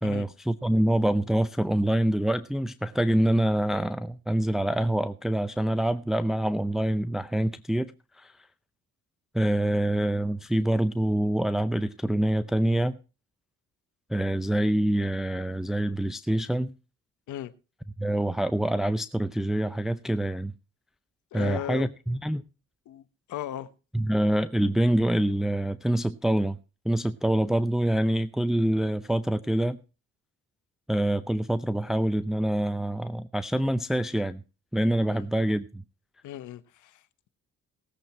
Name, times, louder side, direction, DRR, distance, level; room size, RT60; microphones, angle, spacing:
voice 1, 0.0-7.9 8.2-8.3 9.3-13.0 14.1-16.7 18.0-20.5 21.3-22.4 23.9-26.6 26.8-29.8 30.9-34.4 34.7-35.8, right 1 dB, ahead, 0.5 m, -26 dB
voice 2, 21.3-21.9 22.9-23.0 23.3-23.7 35.1-35.3 36.2-37.3, left 11 dB, 80° left, 1.2 m, -37 dB
18.0 x 7.8 x 4.4 m
cardioid pair, 90°, 30 cm